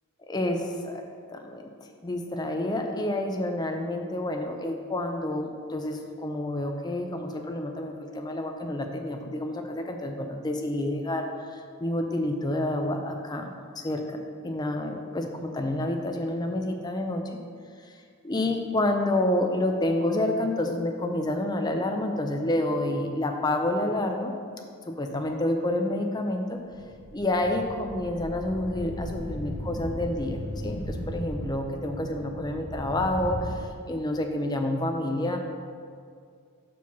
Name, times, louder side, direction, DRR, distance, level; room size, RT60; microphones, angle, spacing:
voice 1, 0.3-1.7 2.0-13.5 13.8-17.4 17.9-24.3 24.9-26.6 27.1-30.4 30.6-35.4, left 1 dB, 20° left, 4 dB, 0.4 m, -29 dB
sound 1, 26.7-33.6, equal, 80° left, 1.5 m, -36 dB
5.5 x 4.6 x 6.0 m, 2.2 s
head